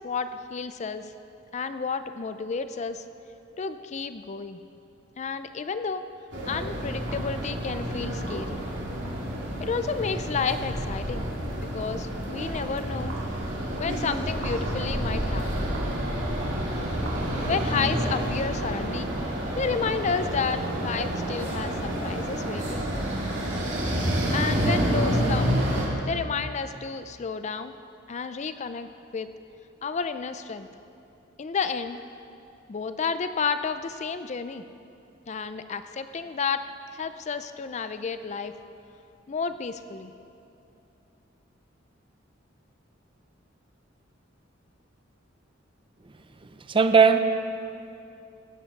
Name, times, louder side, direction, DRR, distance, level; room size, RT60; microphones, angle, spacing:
voice 1, 0.0-1.1 1.5-3.0 3.6-4.6 5.2-6.0 6.5-8.6 9.6-11.3 11.7-13.1 13.8-15.7 17.5-19.3 19.6-22.9 24.3-25.5 26.1-27.7 28.1-29.3 29.8-30.7 31.4-32.0 32.7-34.6 35.3-36.6 36.9-38.5 39.3-40.1, left 5 dB, 35° left, 11 dB, 0.4 m, -31 dB
sound 1, 6.3-25.9, right 1 dB, 65° right, 2.6 m, -29 dB
voice 2, 46.4-47.2, right 5 dB, 25° right, 9 dB, 0.5 m, -19 dB
15.5 x 7.6 x 5.9 m, 2.7 s
head